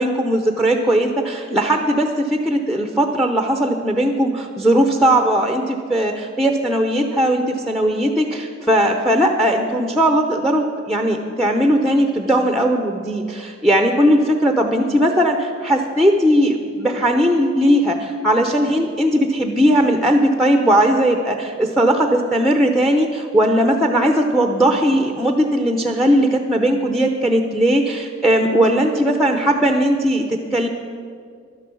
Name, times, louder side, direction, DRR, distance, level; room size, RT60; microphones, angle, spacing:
voice 1, 0.0-30.7, equal, ahead, 4 dB, 0.7 m, -18 dB
12.0 x 10.5 x 7.0 m, 2.1 s
head